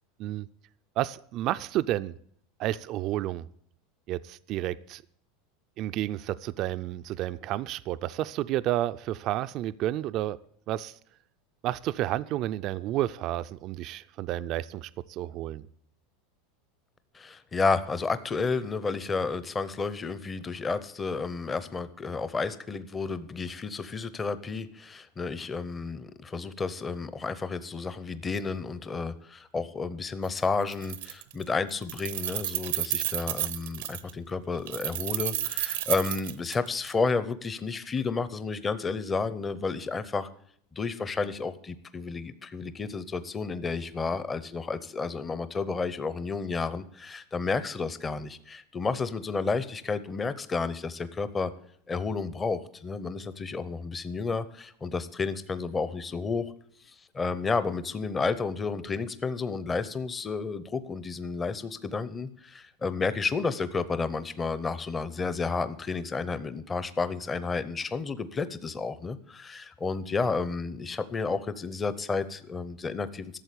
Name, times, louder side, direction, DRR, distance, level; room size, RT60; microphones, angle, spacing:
voice 1, 1.0-2.2 2.6-3.5 4.1-5.0 5.8-10.4 10.7-11.0 11.6-15.7, right 14 dB, 45° right, 14 dB, 0.4 m, -31 dB
voice 2, 17.1-40.3 40.7-51.5 51.9-56.5 57.1-73.4, left 4 dB, 20° left, 14 dB, 0.7 m, -31 dB
Keys jangling, 30.2-30.4 30.7-31.4 31.7-34.1 34.7-36.9, right 14 dB, 80° right, 0.8 m, -31 dB
12.5 x 7.2 x 8.3 m, 0.63 s
supercardioid pair, 135°, 0 cm